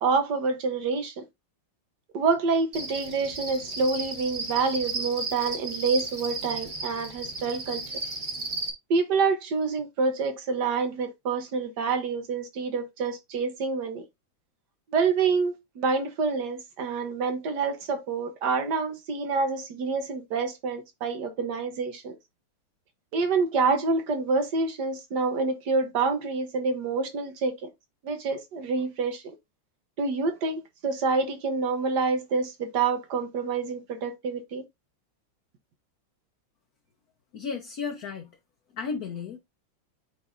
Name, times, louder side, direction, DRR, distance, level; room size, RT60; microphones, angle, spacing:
voice 1, 0.0-1.2 2.1-7.8 8.9-14.0 14.9-22.2 23.1-27.7 28.0-29.2 30.0-34.6, right 4 dB, 65° right, 1.6 m, -27 dB
Cricket, 2.7-8.7, right 3 dB, 25° right, 1.4 m, -34 dB
voice 2, 37.3-38.3 38.7-39.4, left 5 dB, 60° left, 1.2 m, -33 dB
9.3 x 4.1 x 2.5 m
omnidirectional pair, 2.1 m